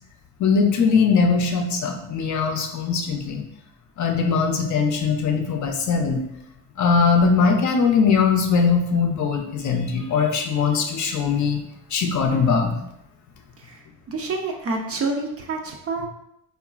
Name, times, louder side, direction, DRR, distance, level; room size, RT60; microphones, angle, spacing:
voice 1, 0.4-3.4 4.0-6.2 6.8-11.6 11.9-12.8, left 5 dB, 45° left, 3 dB, 0.5 m, -20 dB
voice 2, 14.1-16.1, right 3 dB, 35° right, 2 dB, 0.5 m, -28 dB
2.9 x 2.4 x 2.3 m, 0.79 s
supercardioid pair, 80°, 40 cm